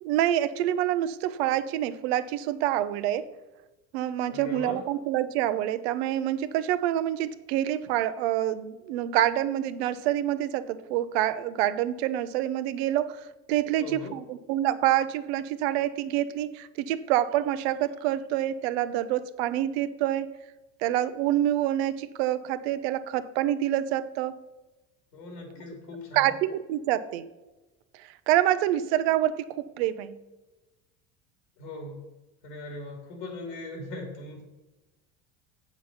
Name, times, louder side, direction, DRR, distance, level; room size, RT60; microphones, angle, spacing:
voice 1, 0.0-3.3 3.9-20.3 20.8-24.4 26.1-27.3 28.0-30.2, right 12 dB, 85° right, 13 dB, 0.7 m, -27 dB
voice 2, 4.3-4.8 13.8-14.1 25.1-26.3 31.6-32.0 32.4-34.4, left 2 dB, 80° left, 3 dB, 2.8 m, -39 dB
7.9 x 7.2 x 5.6 m, 1.1 s
supercardioid pair, 120°, 31 cm